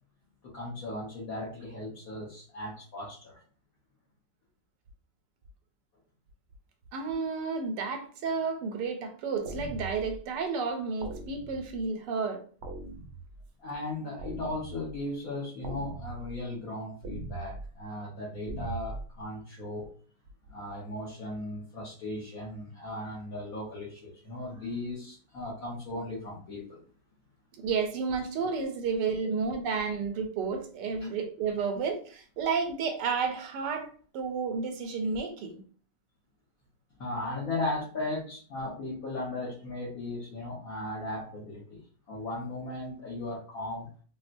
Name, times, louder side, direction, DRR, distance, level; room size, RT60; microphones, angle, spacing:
voice 1, 0.4-3.4 13.6-19.9 20.5-26.8 31.0-31.1 37.0-41.8 42.1-43.9, left 2 dB, 60° left, 1.3 m, -37 dB
voice 2, 6.9-12.4 27.6-33.9 34.1-35.6, right 5 dB, 85° right, 1.2 m, -31 dB
sound 1, 9.4-10.2 11.0-11.8 12.6-13.4 14.2-15.0 15.6-16.4 17.0-17.7 18.5-19.0, right 2 dB, 60° right, 0.8 m, -40 dB
4.2 x 2.1 x 2.5 m
omnidirectional pair, 1.9 m